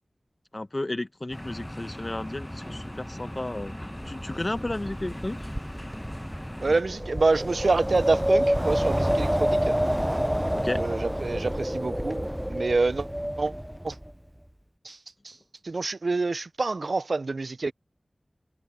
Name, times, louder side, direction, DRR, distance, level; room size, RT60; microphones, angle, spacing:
voice 1, 0.5-3.7 4.0-5.4 10.5-10.8, left 2 dB, 35° left, 1.0 m, -33 dB
sound 1, 1.3-6.8, left 1 dB, 10° left, 0.9 m, -39 dB
Wind, 4.0-14.1, equal, 5° right, 0.5 m, -28 dB
voice 2, 6.6-9.8 10.8-13.1 13.4-13.5 13.8-14.0 14.8-15.0 15.2-15.4 15.6-17.7, right 3 dB, 70° right, 0.5 m, -27 dB
wide cardioid pair, 55°, 0 cm